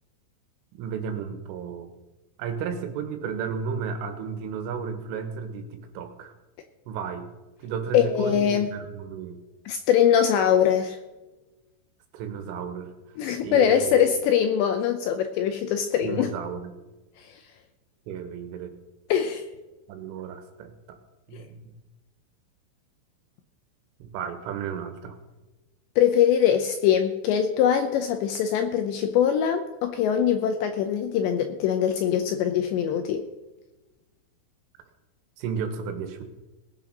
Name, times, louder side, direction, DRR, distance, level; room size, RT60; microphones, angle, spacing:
voice 1, 0.7-1.9 2.4-6.3 6.9-7.3 7.6-9.4 12.1-13.2 13.4-14.1 16.0-16.7 18.1-18.8 19.9-20.7 21.3-21.7 24.0-25.2 35.4-36.2, right 6 dB, 80° right, 7 dB, 3.8 m, -33 dB
voice 2, 7.9-8.7 9.7-11.0 13.2-16.3 17.2-17.3 19.1-19.4 21.3-21.4 26.0-33.2, left 9 dB, 80° left, 7 dB, 2.6 m, -22 dB
19.5 x 7.0 x 6.0 m, 1.1 s
omnidirectional pair, 5.9 m